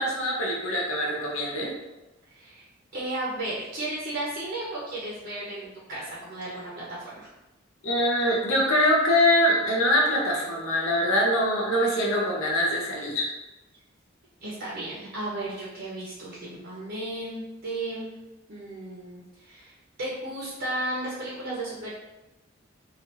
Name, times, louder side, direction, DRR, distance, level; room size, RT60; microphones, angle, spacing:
voice 1, 0.0-1.7 7.8-13.3, left 1 dB, 75° left, -3 dB, 0.7 m, -23 dB
voice 2, 2.3-2.6 2.9-7.3 14.4-18.1 18.5-19.7 20.0-21.9, right 1 dB, 55° right, -6 dB, 0.7 m, -34 dB
3.2 x 2.4 x 2.9 m, 1.0 s
head